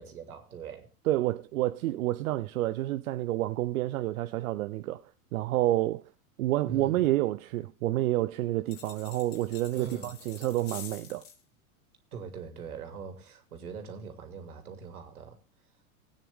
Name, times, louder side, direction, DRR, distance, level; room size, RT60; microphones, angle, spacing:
voice 1, 0.0-0.9 6.6-7.1 9.7-10.1 12.1-15.4, right 6 dB, 90° right, 3.0 m, -42 dB
voice 2, 1.1-5.0 5.3-6.0 6.4-11.2, right 15 dB, 70° right, 0.7 m, -29 dB
sound 1, 8.7-11.4, left 8 dB, 60° left, 3.7 m, -47 dB
17.5 x 9.2 x 3.6 m
hypercardioid pair, 105°, 43 cm